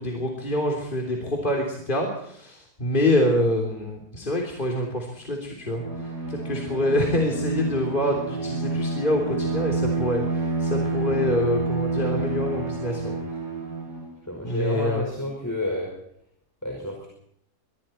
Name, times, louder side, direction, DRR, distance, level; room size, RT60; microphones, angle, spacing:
voice 1, 0.0-5.8 6.3-13.1 14.4-15.1, left 1 dB, 30° left, 0 dB, 3.5 m, -26 dB
Bowed string instrument, 5.7-14.2, right 3 dB, 80° right, 5.7 m, -28 dB
voice 2, 14.3-15.9 16.6-17.1, left 1 dB, 10° left, 0 dB, 5.2 m, -30 dB
25.0 x 23.5 x 4.5 m, 0.71 s
omnidirectional pair, 1.7 m